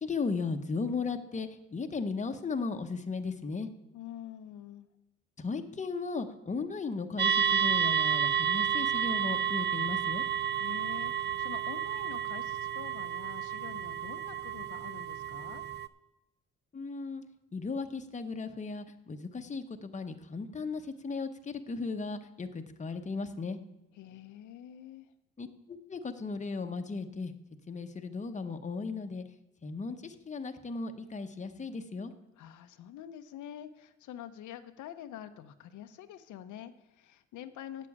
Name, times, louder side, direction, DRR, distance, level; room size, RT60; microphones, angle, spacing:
voice 1, 0.0-3.7 5.4-10.2 16.7-17.2 17.5-23.6 25.4-27.3 27.7-29.2 29.6-32.1, left 4 dB, 25° left, 6 dB, 0.9 m, -36 dB
voice 2, 3.9-4.9 10.5-15.6 23.9-25.1 32.4-37.9, left 11 dB, 75° left, 9 dB, 0.7 m, -46 dB
sound 1, 7.2-15.9, right 8 dB, 35° right, 0.5 m, -31 dB
8.2 x 6.9 x 8.5 m, 0.93 s
cardioid pair, 90°, 30 cm